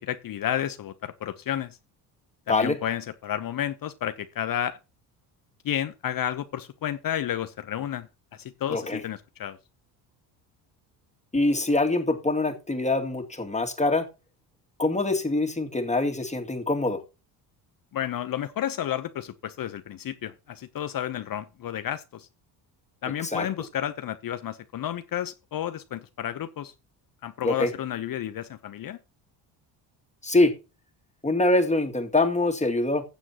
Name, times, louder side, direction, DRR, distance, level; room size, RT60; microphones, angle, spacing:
voice 1, 0.0-1.8 2.5-4.8 5.6-9.6 17.9-22.3 23.0-26.7 27.2-29.0, left 10 dB, 45° left, 0.8 m, -31 dB
voice 2, 8.7-9.0 11.3-14.1 14.8-17.0 23.2-23.5 27.4-27.7 30.2-30.5 31.2-33.0, left 2 dB, 15° left, 2.3 m, -24 dB
15.5 x 7.2 x 2.9 m
hypercardioid pair, 65°, 49 cm